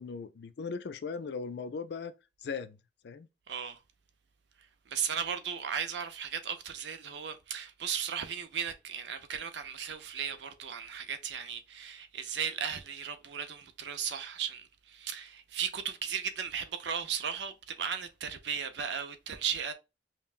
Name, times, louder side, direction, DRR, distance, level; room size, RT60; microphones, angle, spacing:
voice 1, 0.0-2.1 2.4-2.8 3.0-3.3, left 5 dB, 65° left, 0.4 m, -38 dB
voice 2, 3.5-3.8 4.9-19.7, right 7 dB, 70° right, 0.6 m, -36 dB
5.5 x 2.2 x 2.4 m
head